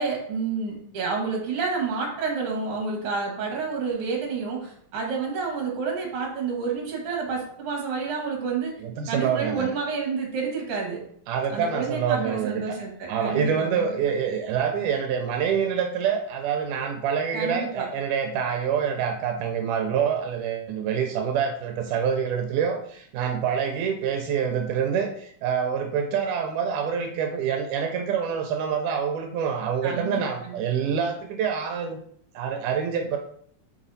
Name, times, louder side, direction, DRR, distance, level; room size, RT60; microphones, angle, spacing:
voice 1, 0.0-8.7 9.1-11.0 11.5-14.0 17.3-17.9 29.8-30.1 30.4-30.6, right 5 dB, 50° right, 0 dB, 2.2 m, -29 dB
voice 2, 8.8-9.7 11.3-12.8 13.1-32.0 32.4-33.2, right 7 dB, 85° right, 4 dB, 2.1 m, -26 dB
6.1 x 4.1 x 4.0 m, 0.65 s
omnidirectional pair, 3.6 m